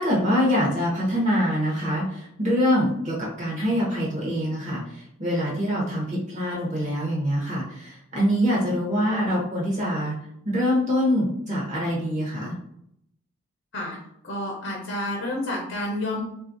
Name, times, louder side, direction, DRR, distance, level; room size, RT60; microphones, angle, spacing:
voice 1, 0.0-10.2 10.4-12.5, equal, 35° right, -4 dB, 0.8 m, -24 dB
voice 2, 14.2-16.2, left 1 dB, 55° left, -2 dB, 0.7 m, -29 dB
3.5 x 2.3 x 2.6 m, 0.73 s
head